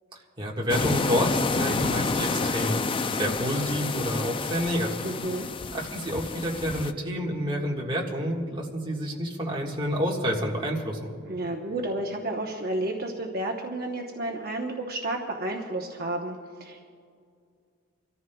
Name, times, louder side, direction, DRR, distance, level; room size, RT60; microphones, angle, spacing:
voice 1, 0.4-5.1 5.7-11.1, equal, 25° right, -2 dB, 1.6 m, -29 dB
sound 1, 0.7-6.9, left 4 dB, 25° left, 0.4 m, -29 dB
voice 2, 5.0-5.5 11.3-16.8, right 1 dB, 50° right, 1 dB, 0.9 m, -31 dB
28.5 x 14.0 x 2.3 m, 2.2 s
head